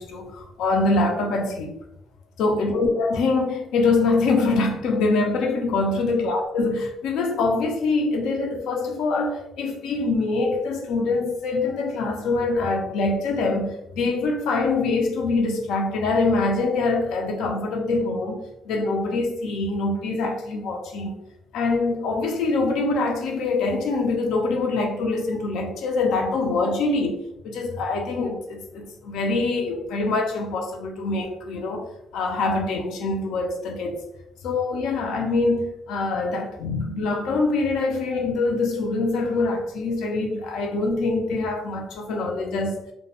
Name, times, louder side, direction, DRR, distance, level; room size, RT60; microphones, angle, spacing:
voice 1, 0.0-1.8 2.4-21.2 21.5-34.0 34.4-42.8, left 3 dB, 85° left, 2 dB, 0.4 m, -24 dB
2.2 x 2.1 x 2.8 m, 0.85 s
cardioid pair, 90°, 0 cm